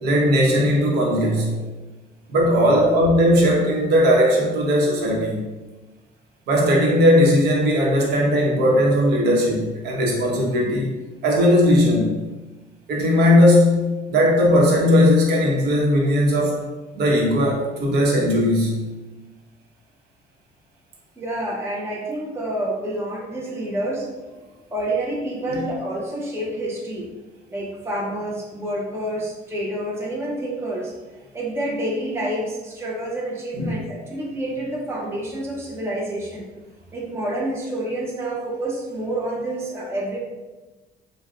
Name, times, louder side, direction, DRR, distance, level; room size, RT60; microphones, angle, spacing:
voice 1, 0.0-1.5 2.3-5.5 6.5-11.0 11.2-12.2 12.9-16.6 16.9-18.8 25.5-25.6 33.5-33.7, equal, 75° right, -2 dB, 0.9 m, -18 dB
voice 2, 1.3-1.6 2.7-3.1 21.2-24.1 24.7-27.1 27.5-30.9 31.3-36.5 36.9-40.2, right 1 dB, 15° right, -3 dB, 0.6 m, -28 dB
5.1 x 2.2 x 2.4 m, 1.2 s
cardioid pair, 110°, 17 cm